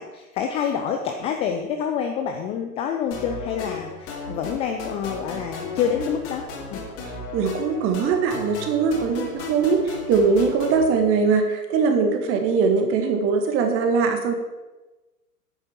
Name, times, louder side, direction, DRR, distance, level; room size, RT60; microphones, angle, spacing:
voice 1, 0.0-6.8, left 7 dB, 15° left, 4 dB, 0.5 m, -27 dB
sound 1, 3.1-10.8, left 3 dB, 30° left, 3.0 m, -35 dB
voice 2, 7.3-14.3, right 5 dB, 30° right, 5 dB, 2.0 m, -21 dB
10.0 x 8.7 x 7.3 m, 1.1 s
figure-of-eight pair, 105°, 46 cm